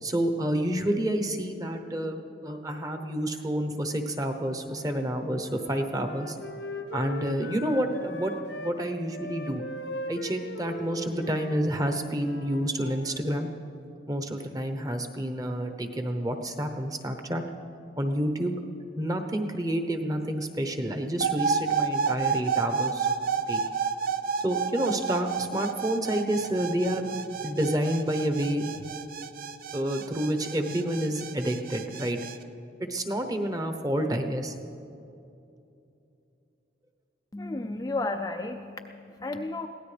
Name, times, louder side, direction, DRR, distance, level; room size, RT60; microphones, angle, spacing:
voice 1, 0.0-6.4 6.9-9.6 10.1-13.5 14.1-17.4 18.0-18.5 19.0-23.1 23.5-23.6 24.4-27.1 27.4-28.6 29.7-32.2 32.8-34.5, right 1 dB, 20° right, 6 dB, 0.9 m, -29 dB
Wind instrument woodwind instrument, 4.9-8.8 9.1-13.4, left 2 dB, 75° left, 0.9 m, -40 dB
sound 1, 21.2-32.4, right 6 dB, 50° right, 0.5 m, -30 dB
voice 2, 37.3-39.7, left 2 dB, 20° left, 4 dB, 0.4 m, -33 dB
23.0 x 16.5 x 3.4 m, 2.8 s
head